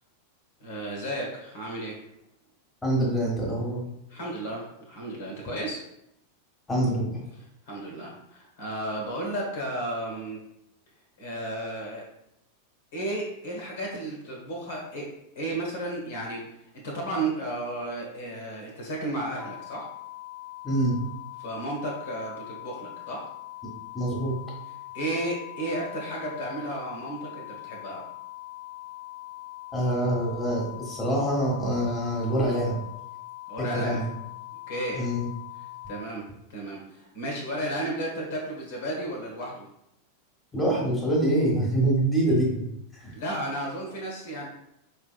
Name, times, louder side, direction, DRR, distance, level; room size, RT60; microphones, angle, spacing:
voice 1, 0.6-2.0 4.1-5.8 7.4-10.4 11.2-12.0 12.9-15.0 15.3-16.5 16.8-19.9 21.4-23.2 24.9-28.0 33.5-34.0 34.7-35.0 35.9-36.2 36.5-39.6 43.1-44.5, right 1 dB, 55° left, -2 dB, 1.3 m, -33 dB
voice 2, 2.8-3.8 6.7-7.2 20.6-20.9 23.9-24.4 29.7-32.8 33.6-34.1 34.9-35.3 40.5-42.6 43.0-43.1, right 1 dB, 10° left, -4 dB, 1.4 m, -25 dB
sound 1, 19.4-36.0, left 17 dB, 5° right, 0.3 m, -42 dB
5.4 x 3.4 x 2.3 m, 0.81 s
figure-of-eight pair, 90°, 0 cm